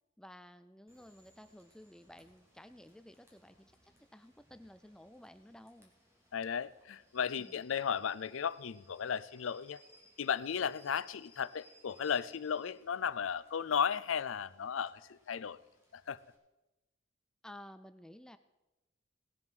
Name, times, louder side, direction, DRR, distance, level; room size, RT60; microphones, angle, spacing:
voice 1, 0.2-5.9 7.4-7.6 17.4-18.4, left 1 dB, 5° left, 11 dB, 0.4 m, -54 dB
Rain / Train, 0.9-16.4, equal, 15° right, 2.7 m, -66 dB
voice 2, 6.3-9.8 10.2-15.6 15.9-16.2, left 7 dB, 80° left, 18 dB, 0.5 m, -35 dB
18.5 x 7.5 x 6.2 m, 1.0 s
head